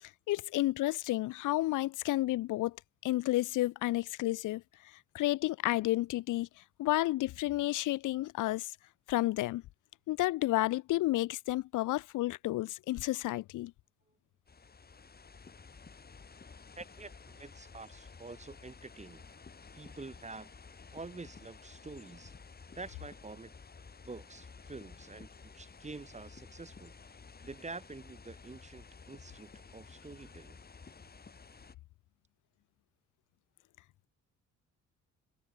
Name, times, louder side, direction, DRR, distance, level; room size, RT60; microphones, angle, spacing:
voice 1, 0.0-2.8 3.0-8.8 9.1-9.6 10.1-13.7, left 17 dB, 85° left, 1.0 m, -31 dB
sound 1, 14.5-31.8, left 5 dB, 30° left, 4.2 m, -53 dB
voice 2, 16.8-19.3 19.7-20.5 20.9-22.3 22.7-23.5 24.0-26.9 27.4-30.6, right 3 dB, 25° right, 4.5 m, -47 dB
cardioid pair, 90°, 30 cm